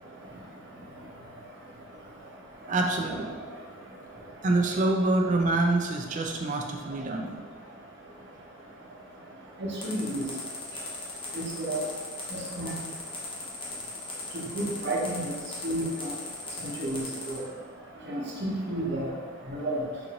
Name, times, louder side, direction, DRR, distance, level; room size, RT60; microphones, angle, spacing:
voice 1, 2.7-3.5 4.4-7.3, right 2 dB, 40° right, 2 dB, 0.4 m, -26 dB
voice 2, 9.6-10.2 11.3-11.8 12.3-12.7 14.5-15.3 15.6-16.1 16.8-17.0 17.3-17.4 18.1-19.1 19.6-19.8, right 1 dB, 60° right, -4 dB, 0.8 m, -31 dB
sound 1, 9.8-17.4, left 3 dB, 30° left, 0.7 m, -38 dB
3.9 x 2.6 x 2.9 m, 1.5 s
head